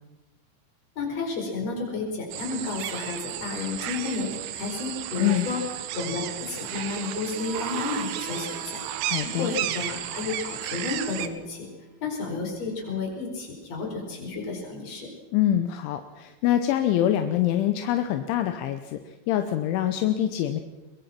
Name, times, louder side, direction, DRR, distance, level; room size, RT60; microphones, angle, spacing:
voice 1, 1.0-5.6 5.9-8.8 9.4-11.7 12.0-15.1, left 4 dB, 35° left, 1 dB, 5.5 m, -32 dB
sound 1, 2.3-11.3, right 12 dB, 75° right, 3.1 m, -33 dB
Harmonica, 7.3-12.6, right 5 dB, 50° right, 4.3 m, -45 dB
voice 2, 9.0-9.5 15.3-20.6, left 12 dB, 80° left, 8 dB, 3.3 m, -25 dB
23.0 x 22.0 x 5.9 m, 1.1 s
omnidirectional pair, 5.5 m